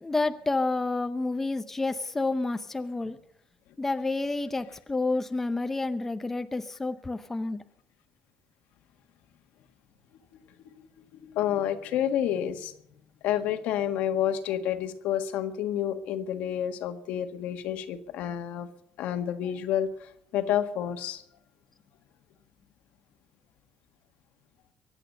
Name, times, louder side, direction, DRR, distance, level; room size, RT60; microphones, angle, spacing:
voice 1, 0.0-3.2 3.8-7.6, left 3 dB, 10° left, 9 dB, 0.7 m, -29 dB
voice 2, 11.2-12.7 13.2-18.7 19.0-19.9 20.3-21.2, left 10 dB, 75° left, 7 dB, 1.7 m, -29 dB
23.5 x 9.0 x 6.7 m, 0.72 s
cardioid pair, 145°, 3 cm